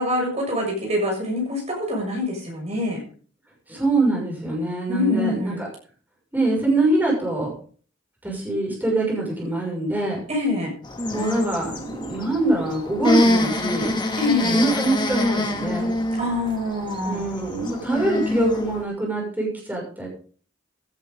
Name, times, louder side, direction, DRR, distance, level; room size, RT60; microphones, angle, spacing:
voice 1, 0.0-3.0 4.9-5.6 10.3-10.7 14.2-14.6 16.2-17.2, left 2 dB, 35° right, 0 dB, 6.8 m, -25 dB
voice 2, 3.7-5.7 6.3-7.5 8.2-10.2 11.1-13.9 14.5-15.9 17.0-20.1, right 2 dB, 10° right, -2 dB, 6.3 m, -24 dB
sound 1, 10.8-18.8, left 1 dB, 25° left, 2.4 m, -25 dB
16.5 x 11.0 x 3.9 m, 0.42 s
head